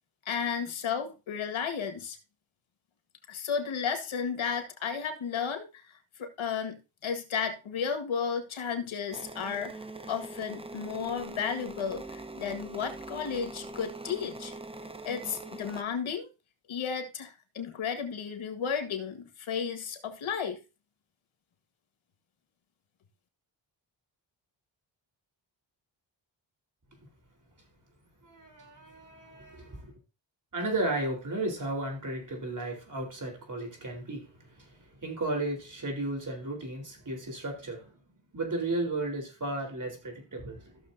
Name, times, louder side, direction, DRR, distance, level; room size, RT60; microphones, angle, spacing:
voice 1, 0.3-2.2 3.3-5.9 6.2-9.8 10.1-14.5 15.1-16.3 16.7-20.6, left 6 dB, 80° left, 1.8 m, -33 dB
sound 1, 9.1-15.8, right 2 dB, 10° right, 0.9 m, -42 dB
voice 2, 28.2-29.9 30.5-37.9 38.3-40.8, right 2 dB, 40° right, 4.0 m, -34 dB
14.5 x 6.6 x 2.7 m
cardioid pair, 95°, 47 cm